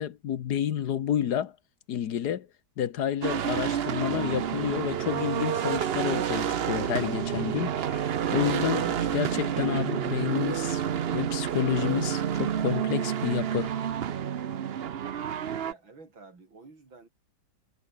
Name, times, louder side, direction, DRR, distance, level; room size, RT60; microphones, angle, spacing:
voice 1, 0.0-1.5 1.9-2.5 2.8-10.8 11.1-13.7, left 9 dB, 60° left, 1.5 m, -30 dB
sound 1, 3.2-15.7, right 9 dB, 70° right, 0.5 m, -29 dB
voice 2, 15.6-17.1, right 3 dB, 90° right, 5.4 m, -51 dB
omnidirectional pair, 2.1 m